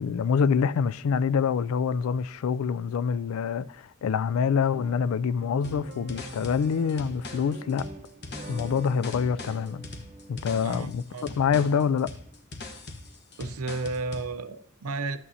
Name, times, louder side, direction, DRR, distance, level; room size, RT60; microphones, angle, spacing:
voice 1, 0.0-7.9 8.5-9.8 10.3-12.1, left 6 dB, 70° left, 0.3 m, -26 dB
sound 1, 4.7-13.2, right 2 dB, 40° right, 0.8 m, -45 dB
sound 2, 5.6-14.3, left 2 dB, 50° left, 1.1 m, -42 dB
voice 2, 10.6-11.7 13.4-15.2, right 3 dB, 80° right, 0.6 m, -33 dB
12.5 x 8.5 x 2.7 m
head